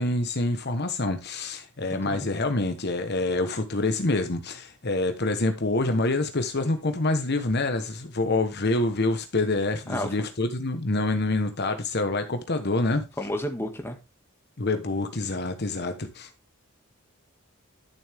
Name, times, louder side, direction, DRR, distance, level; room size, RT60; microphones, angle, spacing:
voice 1, 0.0-13.0 14.6-16.3, left 2 dB, 50° left, 1.1 m, -26 dB
voice 2, 13.2-14.0, left 1 dB, 10° left, 1.9 m, -30 dB
12.0 x 7.1 x 3.5 m
head